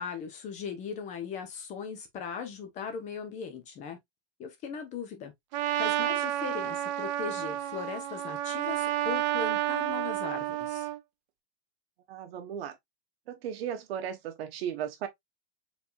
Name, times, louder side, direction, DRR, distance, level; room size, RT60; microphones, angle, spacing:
voice 1, 0.0-4.0 4.4-5.3 5.8-10.9, left 6 dB, 25° left, 0.8 m, -38 dB
Trumpet, 5.5-11.0, right 14 dB, 45° right, 0.6 m, -30 dB
voice 2, 12.1-12.8 13.3-15.1, right 9 dB, 70° right, 1.2 m, -36 dB
4.8 x 3.5 x 2.4 m
supercardioid pair, 170°, 31 cm